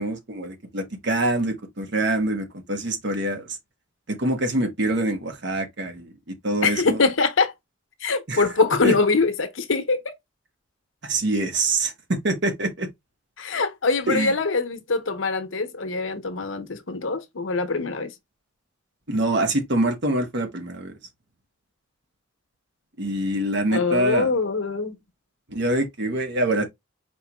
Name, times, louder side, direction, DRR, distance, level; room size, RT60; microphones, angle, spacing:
voice 1, 0.0-3.4 4.1-7.0 8.3-8.4 8.8-8.9 11.1-11.9 12.2-12.9 14.1-14.3 19.1-20.9 23.0-24.3 25.5-26.7, right 1 dB, 60° right, 1.2 m, -25 dB
voice 2, 6.6-7.5 8.0-10.0 13.4-18.1 23.7-25.0, left 4 dB, 85° left, 0.9 m, -23 dB
4.5 x 4.5 x 2.3 m
head